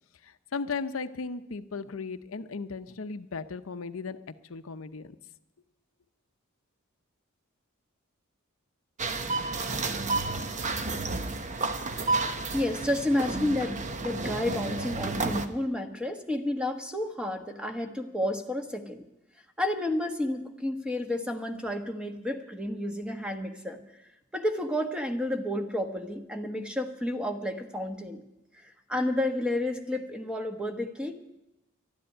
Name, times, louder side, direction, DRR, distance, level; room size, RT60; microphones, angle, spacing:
voice 1, 0.2-4.2 4.5-5.1, left 4 dB, 80° left, 10 dB, 0.7 m, -36 dB
sound 1, 9.0-15.5, right 3 dB, 35° right, 1.0 m, -31 dB
voice 2, 12.5-19.0 19.6-23.8 24.3-28.2 28.5-31.1, left 1 dB, 5° right, 5 dB, 1.2 m, -31 dB
12.5 x 10.5 x 9.9 m, 0.93 s
head